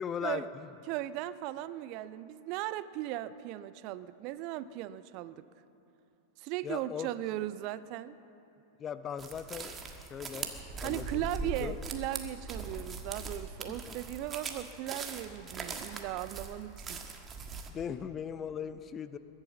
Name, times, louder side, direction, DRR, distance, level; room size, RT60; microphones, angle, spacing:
voice 1, 0.0-0.7 6.6-7.1 8.8-10.5 10.8-11.8 13.7-13.9 17.7-19.2, left 8 dB, 25° left, 13 dB, 0.6 m, -39 dB
voice 2, 0.9-5.5 6.4-8.2 10.8-17.0, right 14 dB, 45° right, 16 dB, 0.5 m, -37 dB
sound 1, 9.2-17.7, right 4 dB, 20° right, 1.5 m, -41 dB
21.5 x 8.9 x 7.3 m, 3.0 s
figure-of-eight pair, 90°, 0 cm